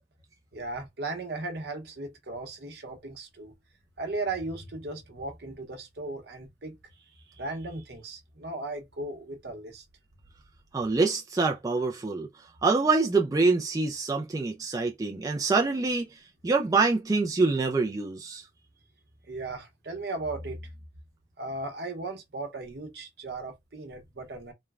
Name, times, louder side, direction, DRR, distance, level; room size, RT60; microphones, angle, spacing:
voice 1, 0.5-3.5 4.0-6.8 7.3-9.8 19.3-20.7 21.4-24.5, right 2 dB, 65° right, 0.8 m, -36 dB
voice 2, 10.7-12.3 12.6-16.1 16.4-18.4, right 3 dB, 20° right, 0.3 m, -25 dB
3.1 x 2.1 x 2.3 m
head